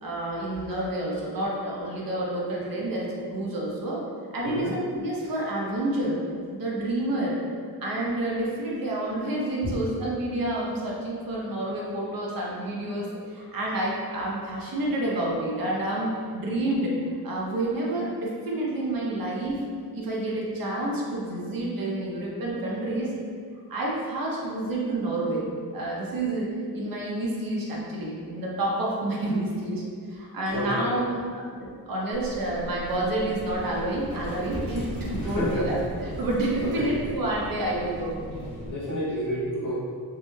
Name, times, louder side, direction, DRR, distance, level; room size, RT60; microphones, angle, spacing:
voice 1, 0.0-4.0 4.3-6.2 6.5-7.3 7.8-16.9 17.2-19.6 19.9-23.1 23.7-25.5 25.7-29.8 30.1-35.7 36.0-38.2, right 1 dB, 60° right, -4 dB, 0.6 m, -29 dB
voice 2, 4.4-4.8 9.6-9.8 30.5-30.9 35.2-35.8 36.6-37.0 38.6-39.7, equal, 50° left, -5 dB, 0.6 m, -30 dB
Livestock farm animals working animals, 32.1-38.8, equal, 15° left, 0.8 m, -37 dB
2.2 x 2.0 x 3.0 m, 2.1 s
wide cardioid pair, 130°, 40 cm